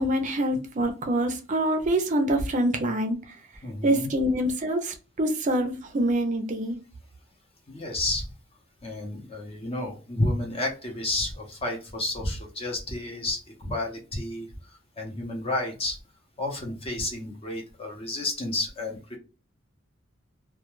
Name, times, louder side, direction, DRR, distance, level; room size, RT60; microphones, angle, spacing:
voice 1, 0.0-3.4 3.8-6.8, right 1 dB, 40° right, 0.5 m, -25 dB
voice 2, 3.6-4.1 7.7-8.3 8.8-14.5 15.0-16.0 16.4-19.2, left 2 dB, 30° left, 0.7 m, -31 dB
2.2 x 2.2 x 3.0 m
head